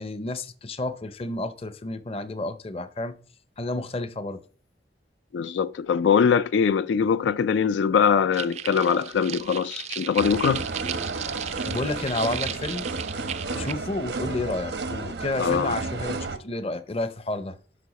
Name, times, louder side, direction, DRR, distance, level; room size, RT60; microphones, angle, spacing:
voice 1, 0.0-3.2 3.6-4.4 11.6-12.9 13.5-17.6, left 2 dB, 35° left, 0.6 m, -31 dB
voice 2, 5.3-10.7 15.4-15.7, left 6 dB, 90° left, 0.3 m, -22 dB
sound 1, 8.3-13.7, right 10 dB, 35° right, 0.3 m, -35 dB
sound 2, 10.2-16.4, right 3 dB, 85° right, 0.9 m, -32 dB
11.5 x 5.6 x 4.1 m
head